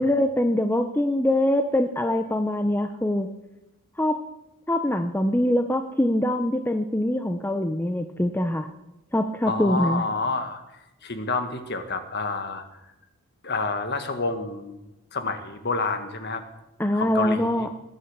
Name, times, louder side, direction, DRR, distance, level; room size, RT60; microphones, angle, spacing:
voice 1, 0.0-3.3 4.0-4.2 4.7-8.7 9.1-10.0 16.8-17.7, left 1 dB, 10° left, 6 dB, 0.6 m, -23 dB
voice 2, 9.4-10.6 11.0-12.6 13.4-14.8 15.1-16.4 16.9-17.7, left 3 dB, 50° left, 7 dB, 1.7 m, -28 dB
20.5 x 8.5 x 7.3 m, 0.96 s
head